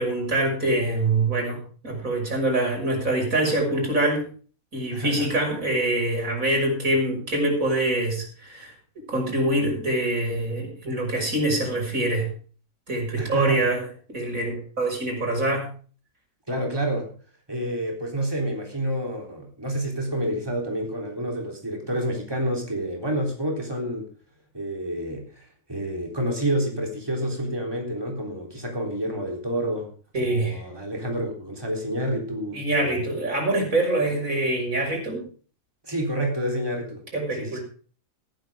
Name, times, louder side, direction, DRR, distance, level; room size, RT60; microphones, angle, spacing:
voice 1, 0.0-4.2 4.7-12.3 12.9-13.8 14.1-15.7 30.1-30.6 32.5-35.2 37.1-37.6, right 1 dB, 85° right, 1 dB, 6.5 m, -25 dB
voice 2, 4.9-5.4 13.2-13.7 16.5-17.1 17.5-24.1 24.5-29.9 30.2-33.1 34.1-34.2 35.8-37.0 37.4-37.6, right 1 dB, 15° right, 1 dB, 3.7 m, -29 dB
15.5 x 14.0 x 3.7 m, 0.40 s
omnidirectional pair, 1.4 m